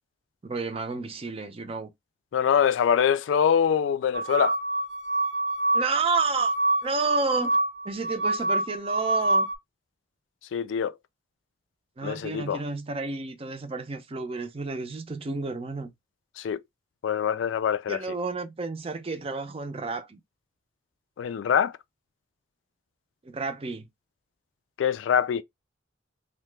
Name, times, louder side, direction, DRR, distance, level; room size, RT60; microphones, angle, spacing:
voice 1, 0.4-1.9 5.7-6.5 6.8-7.6 7.8-9.5 12.0-15.9 17.9-20.2 23.2-23.9, right 4 dB, 30° right, 0.5 m, -31 dB
voice 2, 2.3-4.6 10.5-11.0 12.0-12.6 16.4-16.6 17.0-18.0 21.2-21.7 24.8-25.4, left 8 dB, 80° left, 0.3 m, -24 dB
sound 1, 4.1-9.5, right 2 dB, 80° right, 0.5 m, -26 dB
2.8 x 2.1 x 3.2 m
head